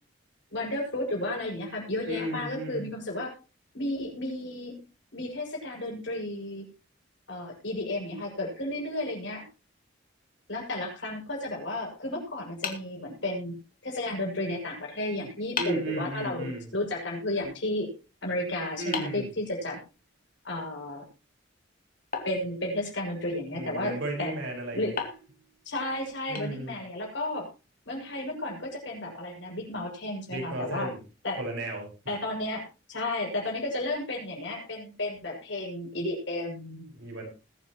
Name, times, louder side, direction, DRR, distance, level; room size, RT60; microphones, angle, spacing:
voice 1, 0.5-3.3 3.7-4.8 5.1-6.7 7.3-9.4 10.5-17.9 18.2-19.8 20.4-21.0 22.2-24.3 24.7-24.9 25.6-27.5 27.8-30.9 31.2-31.4 32.1-36.8, left 1 dB, 65° left, -1 dB, 6.8 m, -33 dB
voice 2, 2.1-2.9 15.6-16.7 18.8-19.3 23.5-25.0 26.3-26.7 30.3-31.0 31.4-31.9 36.9-37.3, right 1 dB, 75° right, 1 dB, 5.3 m, -34 dB
sound 1, 12.6-13.7 15.0-15.1 15.6-16.0 18.9-20.1 22.1-23.2 25.0-27.0, left 5 dB, 50° left, 2.5 m, -38 dB
21.0 x 9.4 x 3.1 m, 0.31 s
head